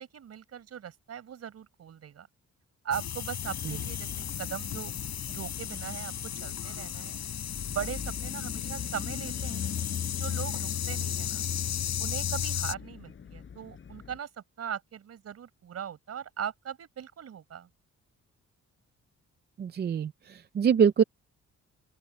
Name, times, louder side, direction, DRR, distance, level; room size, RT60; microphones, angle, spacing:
voice 1, 0.0-2.3 2.8-4.9 5.3-6.1 6.4-7.2 7.7-11.4 12.0-17.7, right 8 dB, 55° right, 4.7 m, -39 dB
sound 1, 2.9-12.7, left 10 dB, 65° left, 6.6 m, -34 dB
sound 2, 3.4-14.2, left 7 dB, 40° left, 7.3 m, -42 dB
voice 2, 19.6-21.0, right 7 dB, 35° right, 0.5 m, -24 dB
open air
wide cardioid pair, 180°, 30 cm